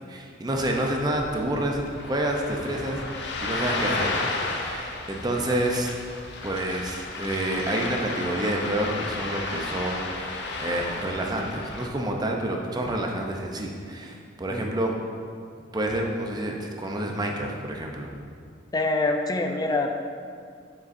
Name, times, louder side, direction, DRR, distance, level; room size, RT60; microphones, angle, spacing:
voice 1, 0.1-1.8 2.0-3.1 3.4-4.2 4.6-6.0 6.4-14.9 15.7-18.2, right 1 dB, 20° right, 1 dB, 0.6 m, -28 dB
Ocean, 0.6-11.9, left 3 dB, 65° left, 0.6 m, -33 dB
voice 2, 18.7-19.9, left 2 dB, 20° left, 4 dB, 0.4 m, -25 dB
6.9 x 6.7 x 2.6 m, 2.2 s
head